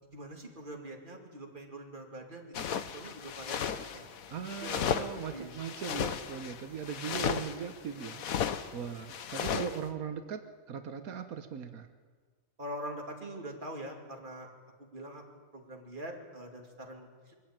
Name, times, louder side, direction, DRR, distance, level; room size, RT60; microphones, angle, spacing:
voice 1, 0.0-4.1 4.6-5.1 5.3-5.6 12.6-14.5 14.8-15.2 15.5-17.3, right 1 dB, 35° right, 2 dB, 2.9 m, -44 dB
sound 1, 2.5-9.8, left 8 dB, 85° left, 1.4 m, -35 dB
voice 2, 4.3-10.4 10.7-11.9, right 7 dB, 85° right, 8 dB, 1.5 m, -39 dB
23.0 x 14.5 x 8.9 m, 1.5 s
omnidirectional pair, 1.5 m